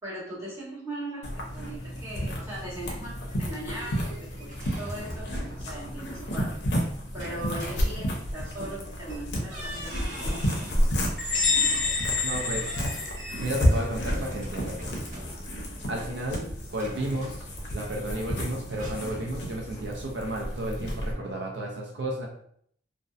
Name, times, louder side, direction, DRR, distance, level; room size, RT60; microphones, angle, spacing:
voice 1, 0.0-6.6 7.1-10.7 15.9-16.2, right 1 dB, 15° right, -8 dB, 1.1 m, -39 dB
sound 1, 1.2-21.1, equal, 65° left, 0.6 m, -31 dB
sound 2, 3.3-5.8 7.1-8.4 9.1-9.2 9.5-10.8 11.2-15.7 16.7-17.9 18.2-19.3, right 1 dB, 40° right, 0.9 m, -43 dB
sound 3, 11.2-13.8, left 4 dB, 10° left, 0.6 m, -27 dB
voice 2, 12.2-12.7 13.4-15.0 15.9-16.5 16.7-17.5 17.7-22.3, right 1 dB, 70° right, 0 dB, 0.4 m, -32 dB
2.6 x 2.0 x 2.3 m, 0.65 s
head